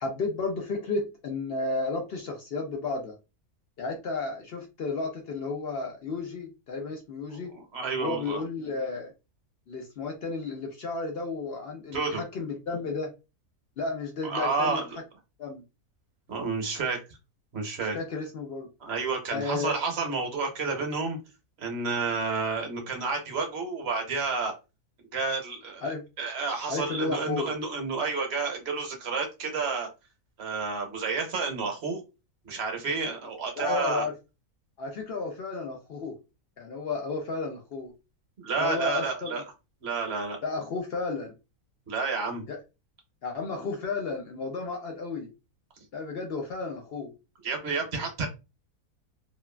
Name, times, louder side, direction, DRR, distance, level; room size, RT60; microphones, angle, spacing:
voice 1, 0.0-3.2 3.8-7.5 8.0-9.1 9.7-13.1 13.8-14.8 15.4-15.6 17.8-18.7 19.3-19.7 25.8-26.0 26.7-27.5 33.6-34.1 34.8-36.2 36.6-37.9 38.6-39.4 40.4-41.3 42.5-42.6 43.2-45.3 45.9-47.1, left 3 dB, 65° left, 2 dB, 0.6 m, -32 dB
voice 2, 7.7-8.4 11.9-12.2 14.2-15.0 16.3-17.0 17.5-18.0 18.8-21.2 21.6-24.5 25.1-29.9 30.4-32.0 32.4-34.0 38.4-39.4 39.8-40.4 41.9-42.4 47.4-48.3, right 4 dB, 50° right, 3 dB, 0.9 m, -30 dB
3.0 x 2.3 x 2.2 m, 0.28 s
omnidirectional pair, 1.6 m